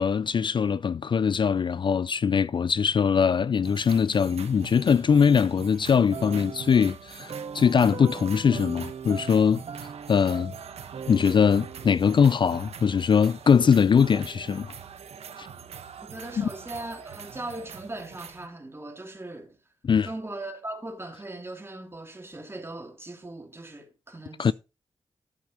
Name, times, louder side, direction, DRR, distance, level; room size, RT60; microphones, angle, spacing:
voice 1, 0.0-9.6 10.1-10.5 11.1-14.7 15.4-15.5 16.4-16.5 19.8-20.1 24.4-24.5, left 6 dB, 50° left, 0.4 m, -22 dB
sound 1, 3.6-18.5, right 7 dB, 90° right, 1.2 m, -44 dB
sound 2, 6.1-12.5, right 6 dB, 60° right, 0.7 m, -40 dB
voice 2, 16.0-19.6 20.0-24.5, right 2 dB, 25° right, 2.9 m, -39 dB
12.0 x 8.1 x 2.9 m
cardioid pair, 65°, 10 cm